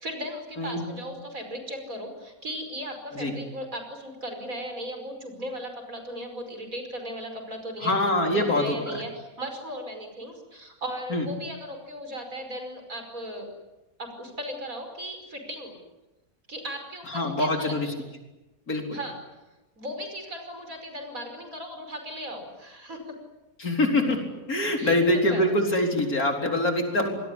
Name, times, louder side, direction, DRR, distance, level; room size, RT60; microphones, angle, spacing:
voice 1, 0.0-8.0 8.3-13.5 14.0-15.8 16.5-17.8 18.9-19.2 19.8-23.2 24.8-25.5, equal, 70° right, 5 dB, 5.8 m, -37 dB
voice 2, 7.8-9.0 11.1-11.3 17.1-17.9 18.7-19.0 23.6-27.2, left 1 dB, 80° left, 3 dB, 4.7 m, -24 dB
27.0 x 20.5 x 10.0 m, 1.0 s
omnidirectional pair, 1.5 m